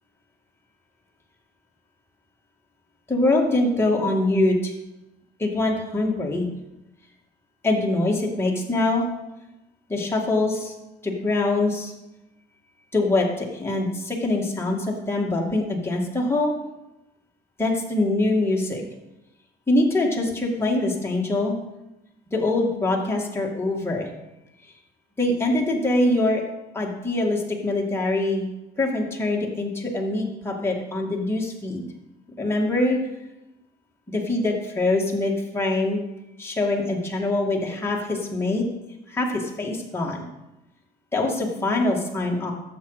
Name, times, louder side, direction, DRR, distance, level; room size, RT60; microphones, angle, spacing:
voice 1, 3.1-4.7 5.4-6.5 7.6-9.1 9.9-10.7 11.0-11.9 12.9-16.5 17.6-18.8 19.7-21.5 22.3-24.1 25.2-26.4 26.7-28.5 28.8-31.8 32.4-33.0 34.1-36.0 36.4-38.6 39.1-40.2 41.1-42.5, left 2 dB, 15° left, -2 dB, 2.4 m, -23 dB
12.0 x 7.7 x 5.1 m, 0.97 s
cardioid pair, 110°, 17 cm